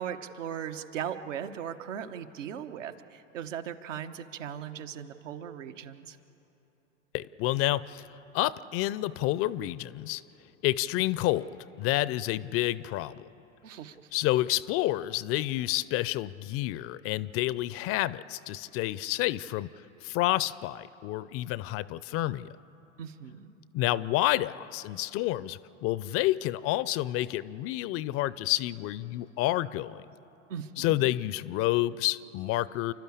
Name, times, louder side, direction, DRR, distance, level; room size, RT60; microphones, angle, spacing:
voice 1, 0.0-6.2 13.6-14.0 23.0-23.5 30.5-31.1, right 9 dB, 70° right, 8 dB, 1.2 m, -38 dB
voice 2, 7.1-8.1 8.3-10.2 10.6-11.5 11.8-13.3 14.1-19.7 20.0-22.5 23.7-30.0 30.8-32.9, left 16 dB, 35° left, 19 dB, 0.5 m, -29 dB
29.0 x 12.0 x 8.4 m, 3.0 s
hypercardioid pair, 95°, 39 cm